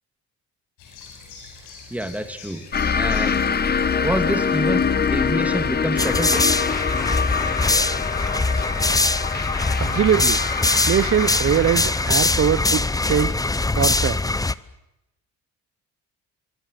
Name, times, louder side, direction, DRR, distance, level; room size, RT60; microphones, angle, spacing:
sound 1, 0.8-9.1, left 4 dB, 90° left, 7.8 m, -44 dB
voice 1, 1.9-2.6 2.9-3.4 4.0-4.8 5.1-6.4, right 1 dB, 5° right, 7 dB, 2.6 m, -26 dB
sound 2, 2.7-13.9, left 6 dB, 30° left, 1.1 m, -25 dB
sound 3, 6.0-14.5, left 2 dB, 10° left, 0.8 m, -22 dB
voice 2, 9.8-10.4 10.9-13.3 13.7-14.2, right 9 dB, 45° right, 14 dB, 0.8 m, -22 dB
26.0 x 23.5 x 6.7 m, 0.90 s
cardioid pair, 90°, 30 cm